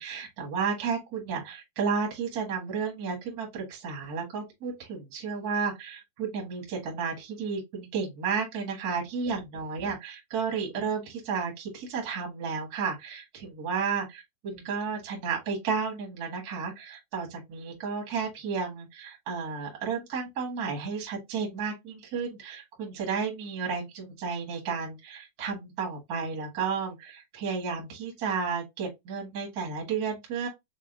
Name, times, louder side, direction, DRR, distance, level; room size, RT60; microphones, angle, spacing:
voice 1, 0.0-30.5, right 5 dB, 60° right, 0.9 m, -32 dB
6.1 x 2.2 x 2.4 m
omnidirectional pair, 4.5 m